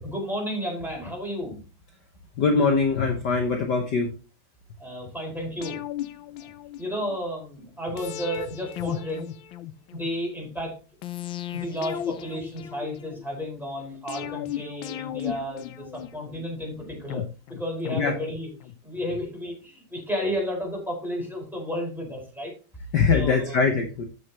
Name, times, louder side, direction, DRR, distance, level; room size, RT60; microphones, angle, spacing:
voice 1, 0.0-1.6 4.8-5.8 6.4-6.5 6.8-9.3 9.9-10.7 11.5-17.2 17.5-18.5 18.8-22.5 23.1-23.6, equal, ahead, -2 dB, 4.8 m, -32 dB
voice 2, 2.4-4.1 17.9-18.1 22.9-24.0, left 4 dB, 55° left, 3 dB, 1.7 m, -22 dB
sound 1, 5.6-7.2 8.0-10.1 11.0-13.2 14.1-16.4 17.1-18.8 19.1-19.2, left 11 dB, 70° left, 1.3 m, -35 dB
13.5 x 6.9 x 2.9 m, 0.33 s
omnidirectional pair, 2.4 m